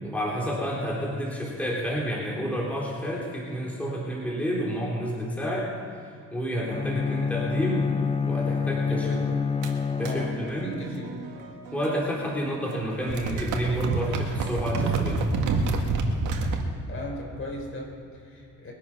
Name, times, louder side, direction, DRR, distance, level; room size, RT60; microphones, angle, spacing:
voice 1, 0.0-5.7 6.3-7.9 8.3-9.1 10.0-10.7 11.7-15.3, equal, 5° left, -4 dB, 3.7 m, -29 dB
Bowed string instrument, 6.7-10.9, left 5 dB, 20° left, 0.5 m, -28 dB
voice 2, 8.8-9.4 10.0-11.2 16.9-18.7, equal, 45° left, 0 dB, 5.0 m, -37 dB
sound 1, 9.6-12.3 12.5-16.6, right 3 dB, 80° right, 1.9 m, -29 dB
22.5 x 8.6 x 6.1 m, 2.4 s
cardioid pair, 90°, 30 cm